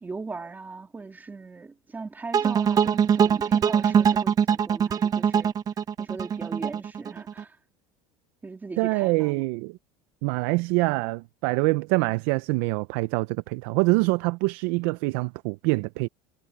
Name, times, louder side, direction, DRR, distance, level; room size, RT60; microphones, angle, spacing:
voice 1, 0.0-5.5 6.0-7.6 8.4-9.4, right 4 dB, 15° right, 2.7 m, -39 dB
sound 1, 2.3-7.4, right 8 dB, 30° right, 0.8 m, -22 dB
voice 2, 8.8-9.8 10.2-16.1, right 24 dB, 70° right, 0.6 m, -25 dB
cardioid pair, 135°, 13 cm